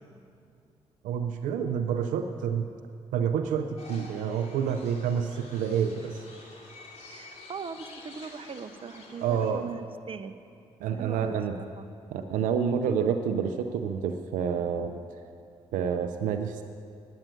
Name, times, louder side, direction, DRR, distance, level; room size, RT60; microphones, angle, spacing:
voice 1, 1.0-2.7 3.1-6.2 9.2-9.8 10.8-11.6 12.1-15.0 15.7-16.6, right 7 dB, 80° right, 7 dB, 0.6 m, -28 dB
sound 1, 3.8-9.5, left 3 dB, 55° left, 2.6 m, -49 dB
voice 2, 7.1-10.4 10.9-11.9, right 5 dB, 45° right, 9 dB, 0.8 m, -40 dB
10.0 x 8.9 x 9.1 m, 2.4 s
supercardioid pair, 50°, 13 cm